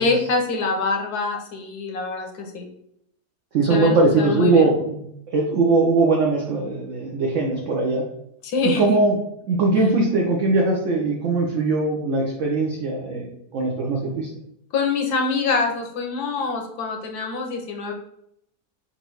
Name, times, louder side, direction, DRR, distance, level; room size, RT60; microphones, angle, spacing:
voice 1, 0.0-2.7 3.7-4.7 8.4-9.0 9.8-9.9 14.7-17.9, left 4 dB, 75° left, 3 dB, 1.3 m, -25 dB
voice 2, 3.5-5.0 5.3-8.0 8.8-9.1 9.5-14.3, right 3 dB, 60° right, -2 dB, 1.0 m, -20 dB
4.3 x 2.6 x 4.6 m, 0.73 s
omnidirectional pair, 1.7 m